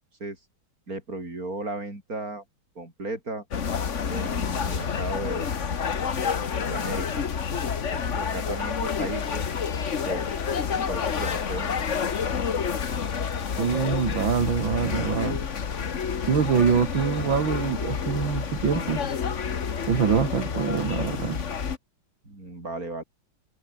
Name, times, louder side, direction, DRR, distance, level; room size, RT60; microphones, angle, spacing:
voice 1, 0.9-2.4 2.8-3.4 4.1-5.5 6.7-7.2 7.9-9.4 10.1-10.4 10.9-11.7 22.2-23.0, right 2 dB, 45° right, 7.2 m, -35 dB
sound 1, 3.5-21.8, left 6 dB, 40° left, 1.5 m, -29 dB
voice 2, 13.6-15.4 16.3-19.0 19.9-21.4, right 6 dB, 70° right, 3.0 m, -24 dB
omnidirectional pair, 2.2 m